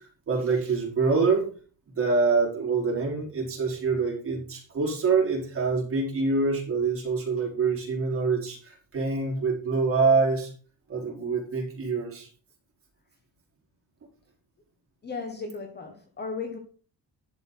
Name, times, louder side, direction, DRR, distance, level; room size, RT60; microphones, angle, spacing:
voice 1, 0.3-1.5 1.9-10.5 10.9-12.3, right 4 dB, 30° right, 4.4 m, -25 dB
voice 2, 15.0-16.6, left 4 dB, 25° left, 1.4 m, -35 dB
11.5 x 6.8 x 5.6 m
cardioid pair, 175°, 42 cm